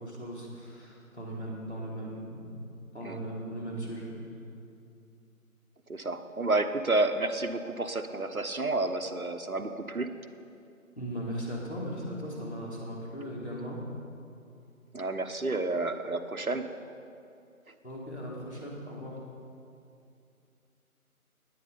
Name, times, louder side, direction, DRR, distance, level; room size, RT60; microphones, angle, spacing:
voice 1, 0.0-2.4 2.9-4.1 11.0-13.8 17.8-19.2, equal, 50° left, -4 dB, 3.5 m, -38 dB
voice 2, 5.9-10.1 14.9-16.6, right 2 dB, 75° right, 8 dB, 1.1 m, -30 dB
20.0 x 8.8 x 5.3 m, 2.5 s
figure-of-eight pair, 180°, 43 cm